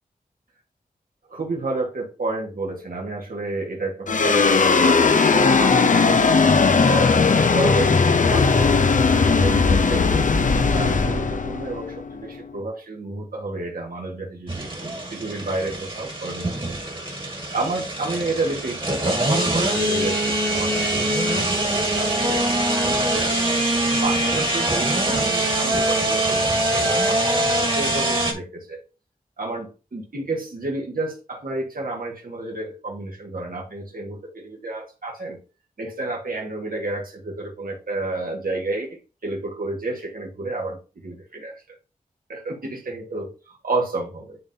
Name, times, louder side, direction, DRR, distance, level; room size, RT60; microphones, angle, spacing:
voice 1, 1.3-8.0 8.2-10.3 10.7-14.7 15.1-17.0 17.5-23.3 24.0-28.8 29.4-35.4 35.8-41.6 42.3-44.4, right 2 dB, 70° right, -1 dB, 1.8 m, -31 dB
sound 1, 4.1-12.6, left 4 dB, 60° left, 0.6 m, -18 dB
sound 2, 14.5-28.3, right 1 dB, 35° right, 2.0 m, -23 dB
10.5 x 3.8 x 2.8 m, 0.33 s
wide cardioid pair, 60°, 15 cm